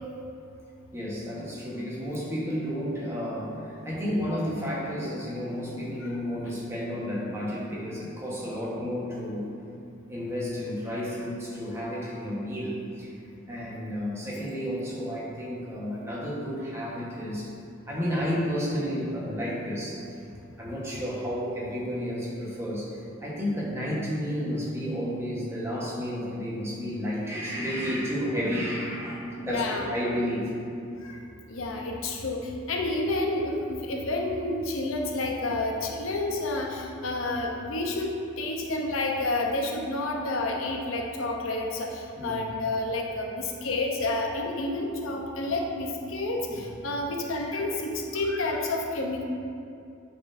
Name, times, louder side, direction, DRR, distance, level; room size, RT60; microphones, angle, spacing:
voice 1, 0.9-9.5 10.1-13.1 13.5-17.5 17.9-20.0 20.6-22.9 23.2-30.5 42.2-42.4 46.5-46.7, equal, 15° right, -6 dB, 1.1 m, -31 dB
voice 2, 29.4-29.9 31.0-31.2 31.5-49.2, left 2 dB, 85° left, 1 dB, 0.7 m, -30 dB
9.4 x 4.3 x 2.6 m, 2.5 s
head